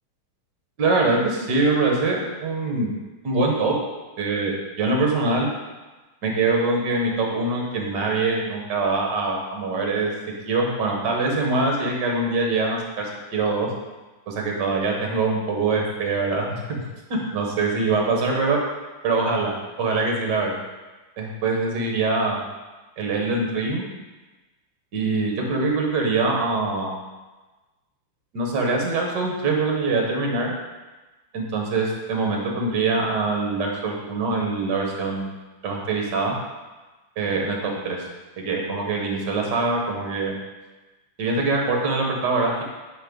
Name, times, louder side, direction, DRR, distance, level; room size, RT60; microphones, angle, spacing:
voice 1, 0.8-2.9 3.2-3.8 4.2-5.5 6.2-10.1 10.5-13.7 14.3-16.8 17.1-18.6 19.0-19.5 19.8-20.6 21.2-22.4 23.0-23.8 24.9-27.0 28.3-30.5 31.3-35.4 35.6-36.4 37.2-38.0 38.4-40.4 41.2-42.6, right 3 dB, 55° right, 0 dB, 1.9 m, -23 dB
9.9 x 5.3 x 3.9 m, 1.2 s
omnidirectional pair, 2.4 m